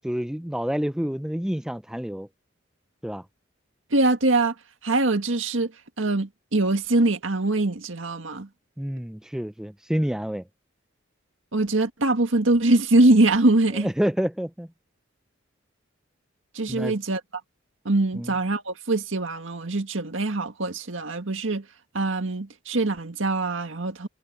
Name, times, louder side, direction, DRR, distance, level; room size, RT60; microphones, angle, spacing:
voice 1, 0.0-2.3 3.0-3.2 8.8-10.4 13.7-14.7 16.7-16.9 18.2-18.3, equal, 5° right, 0.4 m, -28 dB
voice 2, 3.9-4.5 4.8-5.7 6.0-8.5 11.5-13.9 16.6-17.2 17.9-21.6 21.9-24.1, right 2 dB, 80° right, 1.9 m, -23 dB
head